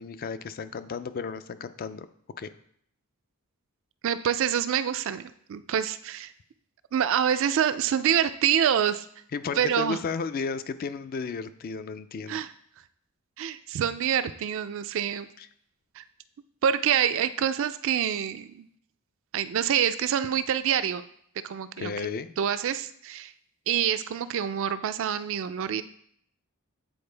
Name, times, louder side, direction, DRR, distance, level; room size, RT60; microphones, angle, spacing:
voice 1, 0.0-2.1 2.4-2.5 9.3-12.4 21.8-22.3, left 5 dB, 45° left, 12 dB, 0.3 m, -33 dB
voice 2, 4.0-6.3 6.9-9.1 9.6-10.0 12.3-12.5 13.4-15.3 15.9-16.0 16.6-18.7 19.3-21.0 21.4-21.9 22.4-23.3 23.7-25.8, right 9 dB, 60° right, 12 dB, 0.3 m, -26 dB
8.6 x 4.3 x 3.3 m, 0.65 s
head